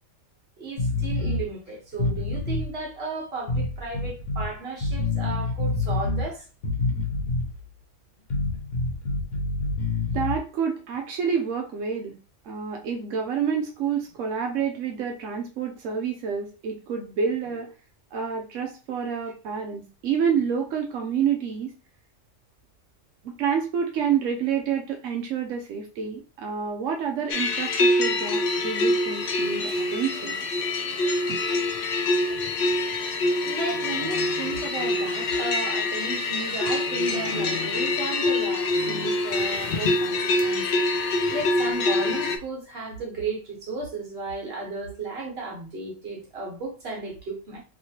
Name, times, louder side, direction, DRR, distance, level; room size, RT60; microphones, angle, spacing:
voice 1, 0.6-6.4 33.3-47.6, right 3 dB, 55° right, 1.4 m, -34 dB
sound 1, 0.8-1.4 1.9-2.7 3.5-4.5 4.8-6.3 6.6-7.6 8.3-10.4, left 3 dB, 80° left, 1.3 m, -27 dB
voice 2, 10.1-12.2 12.4-17.7 18.1-21.7 23.2-30.4 31.3-31.4, right 7 dB, 85° right, 1.0 m, -28 dB
sound 2, 27.3-42.4, left 2 dB, 60° left, 0.6 m, -25 dB
3.1 x 3.0 x 2.8 m
omnidirectional pair, 1.3 m